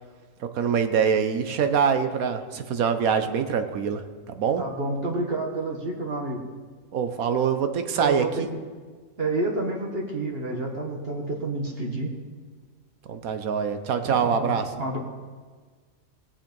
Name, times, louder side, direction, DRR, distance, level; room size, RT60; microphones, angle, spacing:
voice 1, 0.4-4.0 4.3-4.6 6.9-8.5 13.1-14.7, right 7 dB, 80° right, 8 dB, 1.3 m, -24 dB
voice 2, 4.6-6.4 8.0-8.4 9.2-12.1 14.0-14.5 14.8-15.0, right 2 dB, 45° right, 0 dB, 1.5 m, -29 dB
20.0 x 7.5 x 5.3 m, 1.5 s
omnidirectional pair, 1.5 m